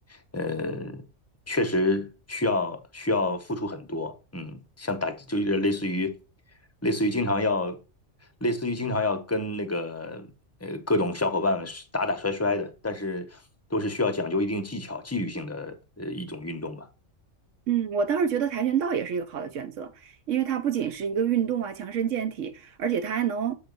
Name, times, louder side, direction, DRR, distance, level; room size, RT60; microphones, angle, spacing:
voice 1, 0.3-1.0 1.5-6.1 6.8-7.8 8.4-10.3 10.6-13.4 13.7-16.9, left 2 dB, 15° left, 0.5 m, -28 dB
voice 2, 17.7-23.6, right 8 dB, 85° right, 1.0 m, -27 dB
7.2 x 3.4 x 5.1 m
omnidirectional pair, 1.3 m